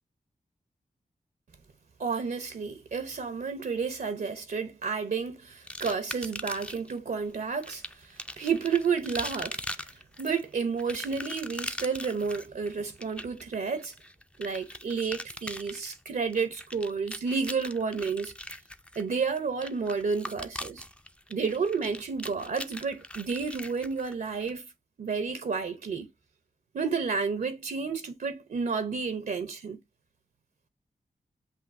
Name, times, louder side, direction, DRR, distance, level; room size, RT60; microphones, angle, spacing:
voice 1, 2.0-9.9 10.2-13.9 14.4-18.3 19.0-20.8 21.3-24.6 25.0-26.1 26.7-29.8, right 5 dB, 70° right, 0.7 m, -31 dB
sound 1, 5.7-6.9 7.6-24.5, left 1 dB, 5° left, 0.5 m, -41 dB
7.8 x 2.6 x 2.6 m
cardioid pair, 40°, 15 cm